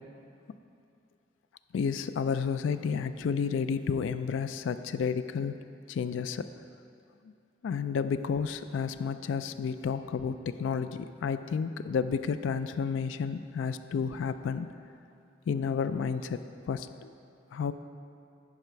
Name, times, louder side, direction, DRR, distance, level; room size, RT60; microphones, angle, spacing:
voice 1, 1.7-5.6 5.9-6.5 7.6-14.7 15.5-17.1 17.5-17.7, left 6 dB, 90° left, 11 dB, 0.3 m, -31 dB
9.2 x 4.9 x 5.6 m, 2.5 s
head